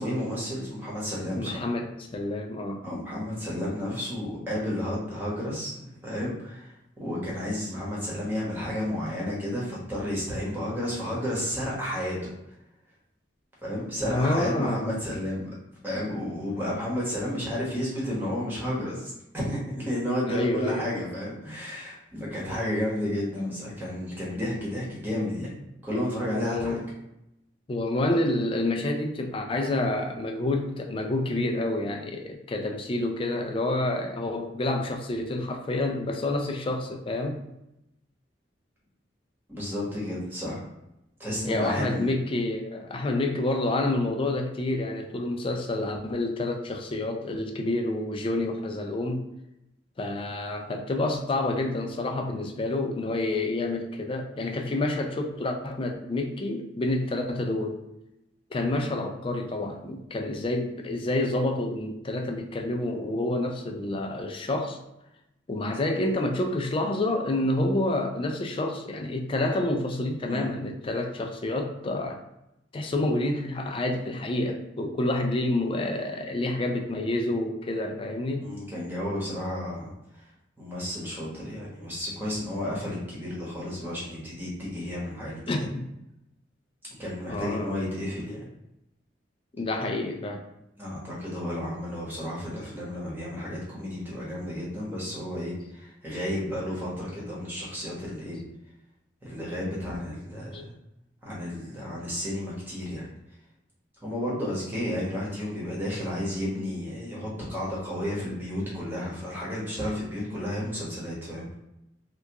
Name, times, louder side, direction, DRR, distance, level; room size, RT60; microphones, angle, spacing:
voice 1, 0.0-1.6 2.8-12.3 13.6-15.5 15.8-25.5 25.8-26.8 39.5-40.6 41.2-42.1 70.3-70.6 78.4-80.2 80.6-85.7 87.0-88.5 90.8-98.4 99.2-100.7 101.2-103.1 104.0-111.6, left 1 dB, 10° right, -6 dB, 1.0 m, -32 dB
voice 2, 1.3-2.8 14.0-14.9 20.3-21.0 26.4-26.9 27.7-37.4 41.4-49.3 50.0-57.8 58.5-64.8 65.5-72.2 72.7-78.5 85.5-85.9 87.3-87.8 89.6-90.4 100.5-100.7, left 2 dB, 30° left, 4 dB, 0.3 m, -28 dB
2.9 x 2.3 x 3.4 m, 0.87 s
head